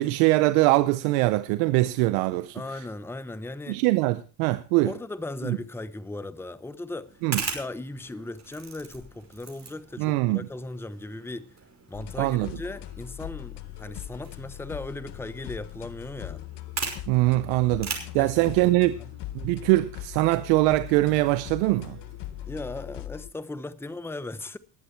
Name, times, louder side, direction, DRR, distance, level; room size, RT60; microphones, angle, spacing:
voice 1, 0.0-2.6 3.7-4.9 5.4-5.6 7.2-7.4 10.0-10.4 12.2-12.5 17.1-19.0 19.3-22.0, right 19 dB, 90° right, 0.7 m, -22 dB
voice 2, 2.5-3.8 4.8-7.2 7.5-11.6 11.9-16.4 18.2-18.4 18.6-19.1 22.5-24.6, left 2 dB, 5° left, 0.8 m, -37 dB
sound 1, 7.1-22.8, right 4 dB, 35° right, 5.5 m, -41 dB
sound 2, 11.9-23.3, left 14 dB, 60° left, 0.9 m, -40 dB
19.5 x 8.1 x 4.4 m
supercardioid pair, 65°, 47 cm